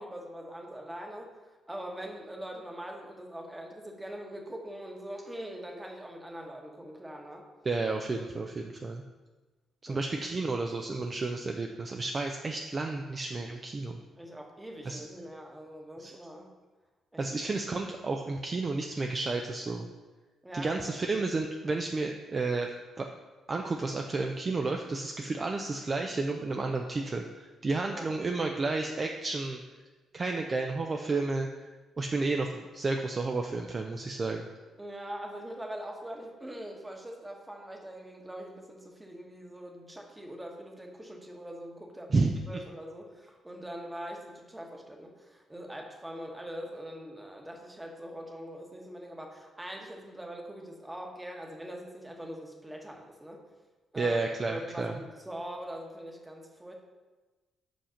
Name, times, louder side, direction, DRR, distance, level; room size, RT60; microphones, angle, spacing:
voice 1, 0.0-7.5 9.9-10.1 14.2-16.5 17.1-17.2 20.4-21.1 27.8-28.1 34.8-53.4 53.9-54.2 54.4-56.7, equal, 10° right, 1 dB, 1.1 m, -42 dB
voice 2, 7.6-9.0 9.8-14.0 14.8-15.0 16.0-16.2 17.2-19.9 20.5-23.1 23.5-29.6 30.1-31.7 32.0-34.5 42.1-42.3 54.0-54.9, right 3 dB, 35° right, 2 dB, 0.5 m, -31 dB
5.7 x 5.1 x 5.1 m, 1.2 s
cardioid pair, 90°, 0 cm